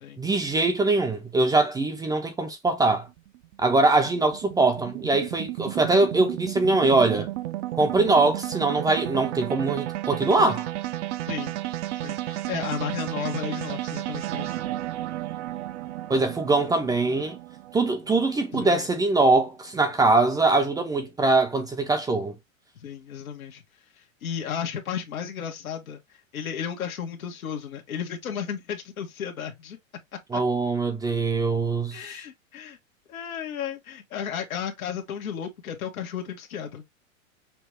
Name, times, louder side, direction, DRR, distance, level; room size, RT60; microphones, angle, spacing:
voice 1, 0.2-3.1 3.6-7.3 7.8-10.7 16.1-17.4 17.7-22.3 30.3-32.0, right 3 dB, 10° right, 0.6 m, -22 dB
sound 1, 3.1-19.3, right 15 dB, 60° right, 0.7 m, -33 dB
voice 2, 12.0-14.6 18.5-18.9 22.8-23.6 24.0-29.8 30.3-30.4 31.9-32.8 33.1-36.8, left 8 dB, 85° left, 1.3 m, -34 dB
5.9 x 2.3 x 3.1 m
hypercardioid pair, 125°, 41 cm